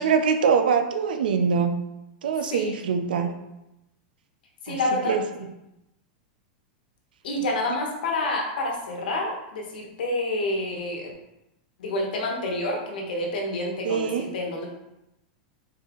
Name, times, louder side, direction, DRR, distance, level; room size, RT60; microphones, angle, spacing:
voice 1, 0.0-1.8 2.2-3.3 4.7-4.8 5.0-5.2 13.8-14.3, right 6 dB, 90° right, 7 dB, 0.5 m, -23 dB
voice 2, 4.6-5.2 7.2-11.1 11.8-14.7, left 2 dB, 85° left, 0 dB, 1.2 m, -28 dB
4.3 x 4.0 x 3.1 m, 0.90 s
supercardioid pair, 135°, 5 cm